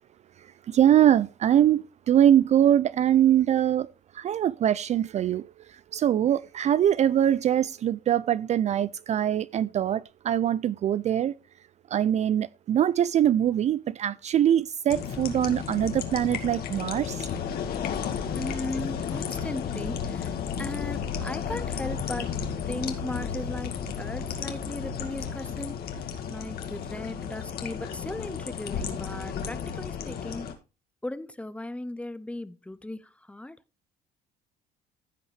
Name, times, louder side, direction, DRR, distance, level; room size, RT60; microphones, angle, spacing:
voice 1, 0.7-3.9 4.2-5.4 5.9-11.3 11.9-17.2, right 10 dB, 45° right, 0.4 m, -23 dB
sound 1, 14.9-30.5, left 7 dB, 65° left, 2.0 m, -33 dB
voice 2, 18.3-20.3 20.6-22.3 22.7-25.8 26.3-30.5 31.0-33.0 33.3-33.6, left 1 dB, 5° left, 0.7 m, -37 dB
15.0 x 5.5 x 3.3 m
cardioid pair, 110°, 17 cm